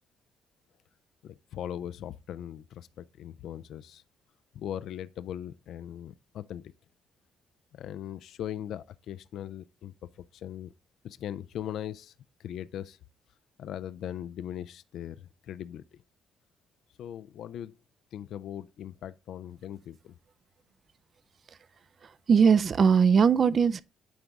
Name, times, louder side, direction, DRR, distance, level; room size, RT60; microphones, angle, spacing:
voice 1, 1.2-4.0 4.5-6.7 7.7-9.9 10.3-10.7 11.0-12.1 12.4-13.0 13.6-16.0 17.0-17.7 18.1-20.1, left 10 dB, 75° left, 0.3 m, -39 dB
voice 2, 22.3-23.8, right 6 dB, 45° right, 0.4 m, -20 dB
9.4 x 3.9 x 3.5 m
cardioid pair, 90°, 0 cm